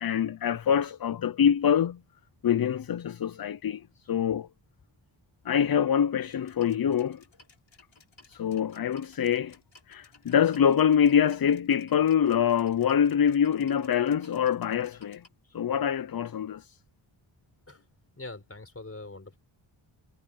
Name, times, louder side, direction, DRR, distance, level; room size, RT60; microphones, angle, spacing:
voice 1, 0.0-2.0 2.4-4.5 5.4-7.2 8.3-9.5 9.9-15.2 15.5-16.8, left 8 dB, 45° left, 0.6 m, -25 dB
sound 1, 6.3-15.3, left 4 dB, 70° left, 7.4 m, -58 dB
voice 2, 18.2-19.4, left 2 dB, 30° left, 4.8 m, -42 dB
wide cardioid pair, 130°, 49 cm